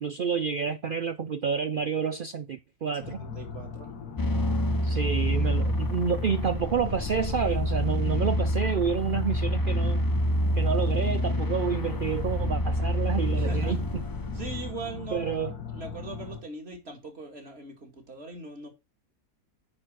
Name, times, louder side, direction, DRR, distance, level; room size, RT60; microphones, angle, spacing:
voice 1, 0.0-3.2 4.8-10.0 10.6-14.0 15.1-15.5, right 6 dB, 80° right, 0.4 m, -29 dB
sound 1, 3.0-16.4, left 6 dB, 85° left, 1.8 m, -39 dB
voice 2, 3.2-3.9 13.3-13.8 14.3-15.3 15.7-18.7, right 3 dB, 40° right, 2.4 m, -40 dB
sound 2, 4.2-14.7, equal, 30° left, 0.3 m, -27 dB
9.9 x 3.9 x 6.2 m
omnidirectional pair, 1.6 m